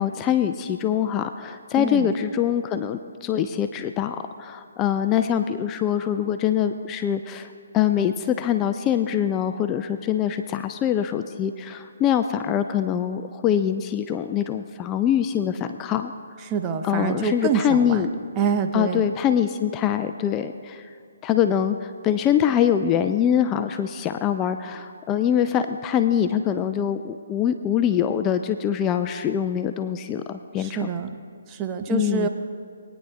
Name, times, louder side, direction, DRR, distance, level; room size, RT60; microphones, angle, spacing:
voice 1, 0.0-7.5 7.7-16.1 16.8-18.1 18.7-20.9 21.2-30.9 31.9-32.3, left 9 dB, 20° left, 8 dB, 0.3 m, -24 dB
voice 2, 1.8-2.1 16.4-18.1 18.4-19.1 30.6-31.2 31.5-32.3, right 6 dB, 20° right, 6 dB, 0.6 m, -26 dB
22.0 x 9.7 x 2.2 m, 2.3 s
figure-of-eight pair, 145°, 0 cm